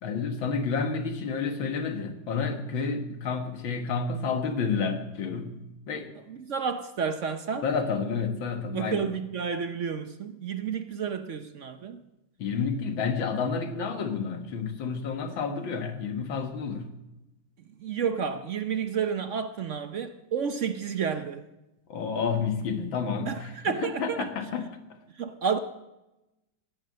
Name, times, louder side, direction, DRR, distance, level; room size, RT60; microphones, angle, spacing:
voice 1, 0.0-6.1 7.6-9.1 12.4-16.9 21.9-24.7, left 5 dB, 70° left, 2.2 m, -30 dB
voice 2, 6.3-7.7 8.7-12.0 17.8-21.5 23.3-24.3 25.1-25.6, right 6 dB, 70° right, 0.7 m, -31 dB
17.0 x 10.0 x 7.5 m
omnidirectional pair, 2.2 m